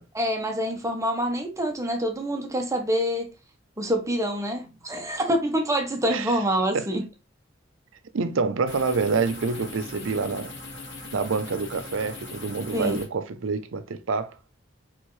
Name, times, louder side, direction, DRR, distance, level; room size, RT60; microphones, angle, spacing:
voice 1, 0.1-3.3 3.8-7.0 12.7-13.0, equal, 15° right, 0.9 m, -26 dB
voice 2, 8.1-10.5 11.1-14.3, right 4 dB, 85° right, 0.5 m, -27 dB
sound 1, 8.7-13.1, left 3 dB, 65° left, 1.3 m, -40 dB
4.5 x 3.8 x 3.1 m
head